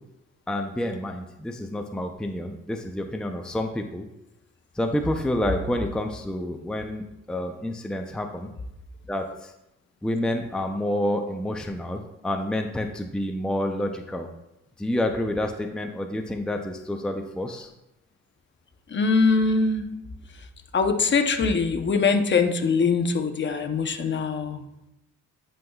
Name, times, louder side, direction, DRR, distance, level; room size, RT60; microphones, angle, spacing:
voice 1, 0.5-4.1 4.7-8.5 9.1-9.5 10.0-14.3 14.8-17.7 19.9-20.0, left 1 dB, 5° left, 4 dB, 0.6 m, -29 dB
voice 2, 18.9-19.8 20.3-20.5 20.7-24.6, left 4 dB, 40° left, 6 dB, 0.8 m, -22 dB
11.0 x 5.5 x 2.3 m, 0.89 s
cardioid pair, 90°, 30 cm